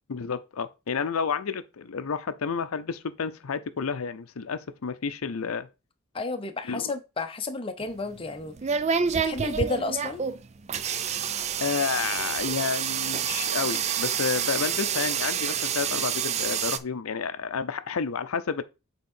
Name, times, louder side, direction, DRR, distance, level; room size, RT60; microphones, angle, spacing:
voice 1, 0.1-5.7 6.7-6.9 11.6-18.6, left 6 dB, 80° left, 0.6 m, -30 dB
voice 2, 6.1-8.6 9.1-10.2, left 3 dB, 25° left, 0.7 m, -31 dB
sound 1, 7.8-16.8, right 7 dB, 30° right, 0.4 m, -28 dB
8.4 x 3.7 x 4.3 m
head